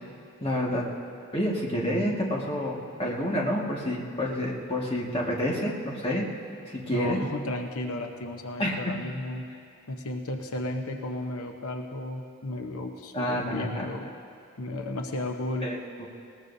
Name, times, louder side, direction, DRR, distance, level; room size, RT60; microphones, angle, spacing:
voice 1, 0.4-0.9 1.3-6.3 6.7-7.2 8.6-8.8 13.1-13.8 15.6-16.1, equal, 25° left, -3 dB, 1.7 m, -29 dB
voice 2, 6.9-9.5 9.9-14.1 14.6-15.7, left 2 dB, 90° left, 4 dB, 0.9 m, -34 dB
20.5 x 19.0 x 2.7 m, 2.5 s
head